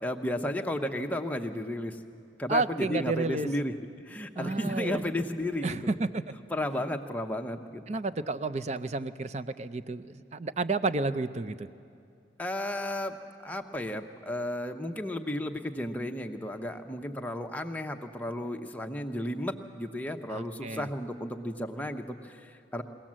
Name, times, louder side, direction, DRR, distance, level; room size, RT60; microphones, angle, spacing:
voice 1, 0.0-2.0 2.4-3.7 4.0-6.0 6.5-7.8 12.4-13.2 13.4-22.8, left 1 dB, 10° left, 4 dB, 0.8 m, -33 dB
voice 2, 2.5-3.5 4.4-5.0 5.6-6.2 7.9-11.7 20.3-20.9, right 3 dB, 35° right, 13 dB, 0.5 m, -31 dB
22.5 x 17.5 x 7.5 m, 2.5 s
head